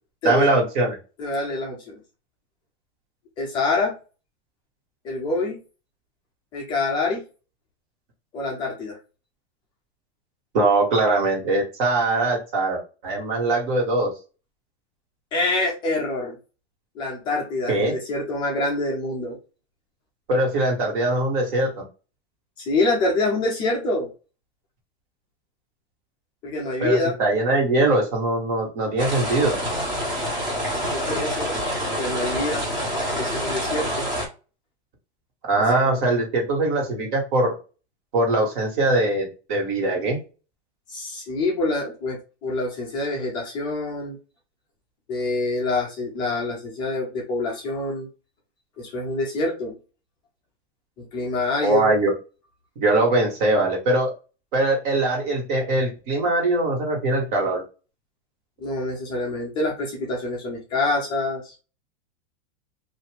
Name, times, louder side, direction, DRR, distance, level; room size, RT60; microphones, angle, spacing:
voice 1, 0.2-0.9 10.5-14.1 17.7-17.9 20.3-21.7 26.8-29.6 35.5-37.5 38.1-40.2 51.6-52.1 52.8-54.1 54.5-57.6, right 2 dB, 45° right, 0 dB, 1.4 m, -21 dB
voice 2, 1.2-2.0 3.4-3.9 5.0-5.6 6.5-7.2 8.3-9.0 15.3-16.3 17.0-19.4 22.6-24.1 26.4-27.2 30.7-31.6 32.0-32.7 33.1-34.1 35.7-36.0 40.9-44.2 45.1-48.1 48.8-49.8 51.0-52.0 58.6-61.5, left 2 dB, 15° left, -2 dB, 0.4 m, -26 dB
sound 1, 29.0-34.3, equal, 10° right, 0.7 m, -27 dB
2.7 x 2.5 x 3.3 m, 0.32 s
supercardioid pair, 165°, 34 cm